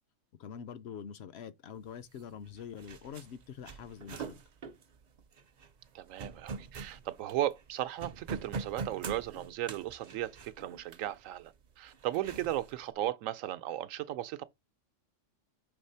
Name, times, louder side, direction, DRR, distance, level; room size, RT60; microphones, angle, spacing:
voice 1, 0.4-4.4, left 8 dB, 65° left, 0.7 m, -45 dB
sound 1, 2.2-2.3 2.5-7.7 8.0-11.2 11.9-12.7, right 4 dB, 50° right, 0.5 m, -43 dB
voice 2, 5.9-14.4, right 13 dB, 85° right, 1.0 m, -36 dB
5.4 x 3.2 x 5.5 m
omnidirectional pair, 1.3 m